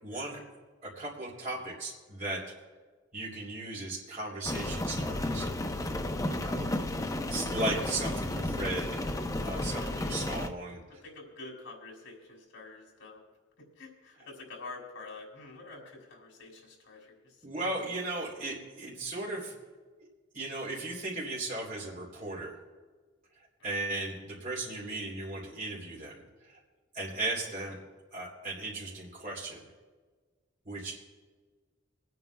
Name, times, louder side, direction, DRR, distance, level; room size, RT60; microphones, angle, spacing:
voice 1, 0.0-0.4 0.8-2.4 3.1-5.5 6.3-6.7 7.3-9.0 9.4-10.8 17.4-19.5 20.3-22.5 23.6-26.6 26.9-27.8 28.1-29.6 30.6-31.0, right 2 dB, 45° right, -5 dB, 3.2 m, -36 dB
Rain, 4.4-10.5, left 1 dB, 20° left, 0.6 m, -32 dB
voice 2, 9.8-10.2 10.7-13.2 13.6-17.4 23.6-24.0, left 3 dB, 75° left, 0 dB, 3.1 m, -48 dB
27.5 x 9.3 x 2.3 m, 1.4 s
head